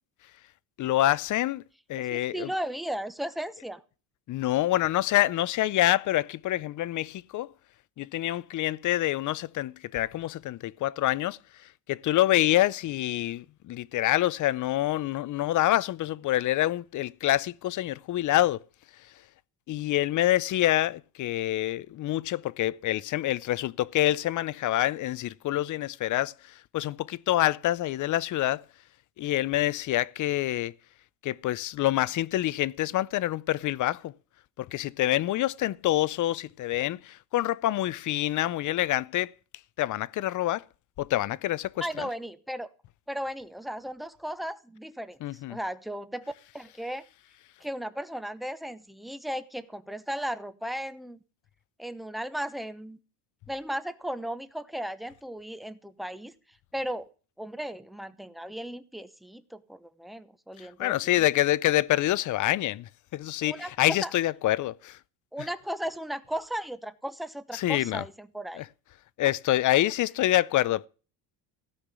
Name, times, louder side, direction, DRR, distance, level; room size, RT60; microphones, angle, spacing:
voice 1, 0.8-1.6 1.9-2.5 4.3-7.5 8.0-11.4 11.9-18.6 19.7-26.3 26.7-28.6 29.2-30.7 31.2-34.1 34.6-39.3 39.8-40.6 41.0-42.1 45.2-45.6 60.6-65.0 67.5-68.0 68.5-68.7 69.2-70.9, left 14 dB, 40° left, 0.6 m, -26 dB
voice 2, 2.0-3.8 41.8-42.7 43.1-47.0 47.6-51.2 51.8-53.0 53.5-56.3 56.7-57.1 57.4-61.2 63.4-63.7 64.0-64.1 65.3-68.6, equal, ahead, 0.8 m, -36 dB
16.5 x 5.8 x 8.2 m
cardioid pair, 125°, 45 cm